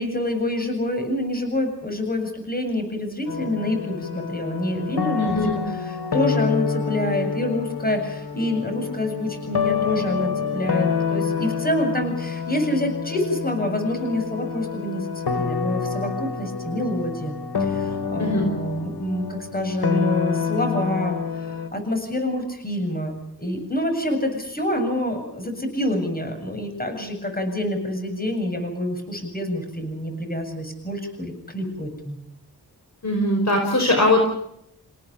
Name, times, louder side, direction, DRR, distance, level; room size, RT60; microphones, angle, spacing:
voice 1, 0.0-5.4 5.7-32.2, left 1 dB, 25° left, 5 dB, 7.8 m, -27 dB
sound 1, 3.3-21.7, left 6 dB, 90° left, 2.8 m, -27 dB
voice 2, 5.2-5.6 18.2-18.5 33.0-34.3, left 1 dB, 45° left, 3 dB, 5.3 m, -20 dB
29.5 x 17.5 x 7.3 m, 0.76 s
wide cardioid pair, 110°, 38 cm